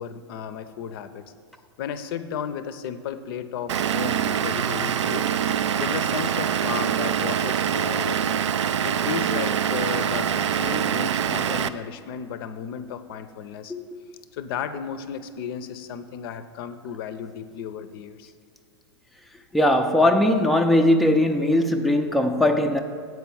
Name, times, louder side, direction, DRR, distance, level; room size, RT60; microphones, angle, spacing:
voice 1, 0.0-1.3 1.8-5.3 5.8-8.4 8.8-13.7 14.3-18.3, left 8 dB, 55° left, 12 dB, 0.6 m, -34 dB
Vehicle / Engine, 3.7-11.7, right 9 dB, 85° right, 0.4 m, -24 dB
voice 2, 19.5-22.8, left 1 dB, ahead, 4 dB, 0.5 m, -19 dB
8.2 x 4.7 x 7.0 m, 2.3 s
hypercardioid pair, 120°, 15 cm